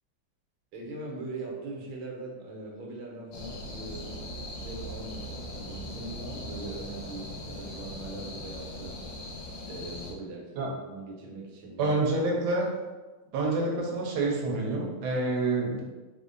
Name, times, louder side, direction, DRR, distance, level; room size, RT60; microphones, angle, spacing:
voice 1, 0.7-4.3 4.5-9.0 9.6-12.0 13.2-13.3, right 2 dB, 85° right, -1 dB, 1.6 m, -41 dB
sound 1, 3.3-10.1, left 1 dB, 70° left, 1.3 m, -40 dB
voice 2, 11.8-12.7 13.3-15.8, right 2 dB, 65° right, -1 dB, 1.1 m, -27 dB
3.5 x 2.1 x 3.7 m, 1.3 s
omnidirectional pair, 2.3 m